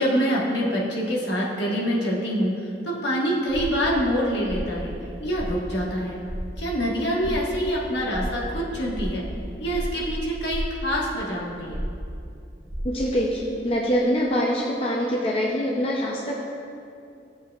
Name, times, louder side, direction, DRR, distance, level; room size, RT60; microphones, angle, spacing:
voice 1, 0.0-4.9 5.2-6.2 6.6-9.3 9.6-11.8, equal, 75° left, -4 dB, 1.5 m, -25 dB
sound 1, 3.5-4.0 4.3-5.0 5.3-5.8 6.2-6.7 7.1-12.2 12.5-13.1, equal, 20° right, 0.8 m, -34 dB
voice 2, 12.8-16.4, equal, 30° left, -2 dB, 0.6 m, -24 dB
13.5 x 7.2 x 2.4 m, 2.6 s
head